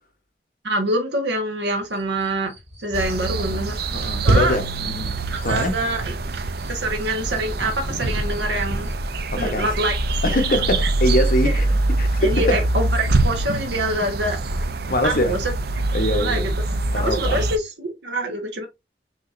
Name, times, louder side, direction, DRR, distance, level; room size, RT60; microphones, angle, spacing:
voice 1, 0.6-2.5 2.8-3.7 4.2-4.6 5.3-6.3 6.7-8.9 9.3-10.4 11.4-11.6 12.2-14.4 15.0-15.5 16.1-16.5 16.9-18.7, right 1 dB, 75° right, 1.1 m, -25 dB
sound 1, 1.6-9.1, left 1 dB, 35° right, 1.6 m, -42 dB
sound 2, 2.9-17.6, right 2 dB, 60° right, 0.5 m, -24 dB
voice 2, 3.4-5.1 5.4-5.8 9.3-9.7 10.2-11.7 12.0-12.6 14.9-15.4 15.9-16.5 16.9-17.5, left 1 dB, 50° left, 0.8 m, -23 dB
sound 3, 8.0-12.6 14.4-14.7, equal, 20° right, 1.5 m, -35 dB
6.2 x 2.9 x 2.5 m
head